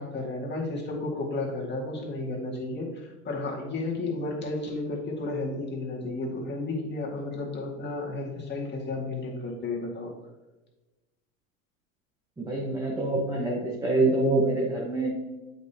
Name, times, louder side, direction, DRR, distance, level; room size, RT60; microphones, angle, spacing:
voice 1, 0.0-10.1, left 2 dB, 25° left, -3 dB, 1.9 m, -32 dB
voice 2, 12.4-15.1, right 2 dB, 10° right, -4 dB, 1.2 m, -25 dB
8.1 x 5.2 x 2.9 m, 1.1 s
hypercardioid pair, 105°, 42 cm